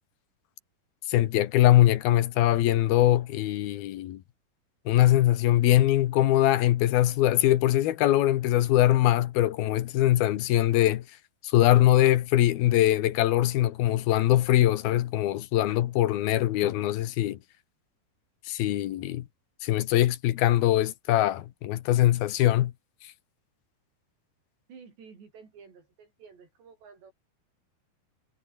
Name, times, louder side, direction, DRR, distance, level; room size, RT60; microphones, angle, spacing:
voice 1, 1.1-4.2 4.9-11.0 11.4-17.4 18.5-19.3 19.6-22.7, left 14 dB, 70° left, 2.8 m, -22 dB
voice 2, 24.7-27.1, right 6 dB, 75° right, 7.6 m, -51 dB
omnidirectional pair, 5.0 m